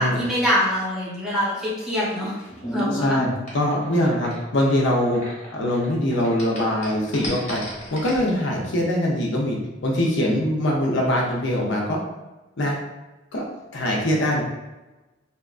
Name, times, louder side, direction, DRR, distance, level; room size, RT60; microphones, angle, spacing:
voice 1, 0.0-2.4 2.7-3.2, equal, 5° right, -8 dB, 0.7 m, -24 dB
sound 1, 1.5-5.9 6.1-8.3, left 1 dB, 35° left, 0.9 m, -33 dB
voice 2, 3.5-5.2 5.5-7.6 7.9-9.6 9.8-12.0 12.6-12.8 13.3-13.4 13.7-14.4, left 1 dB, 65° left, -2 dB, 0.5 m, -22 dB
2.7 x 2.3 x 2.3 m, 1.1 s
head